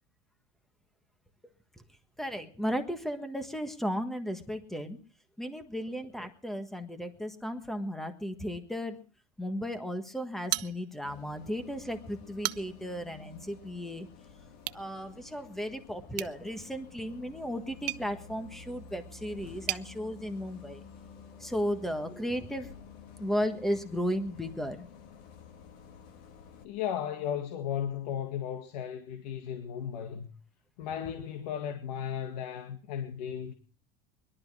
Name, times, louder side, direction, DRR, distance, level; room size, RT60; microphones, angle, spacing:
voice 1, 2.2-5.0 5.4-9.0 9.4-14.1 14.7-20.8 21.4-22.7 23.2-24.9, equal, ahead, 1.5 m, -35 dB
sound 1, 10.5-11.3 11.6-11.7 12.2-12.9 14.6-14.9 16.1-19.9, right 19 dB, 80° right, 0.7 m, -38 dB
Bus, 11.0-26.6, left 6 dB, 45° left, 1.7 m, -51 dB
voice 2, 26.6-30.3 30.8-33.5, left 9 dB, 80° left, 1.9 m, -35 dB
21.5 x 12.0 x 4.8 m
cardioid pair, 170°, 21 cm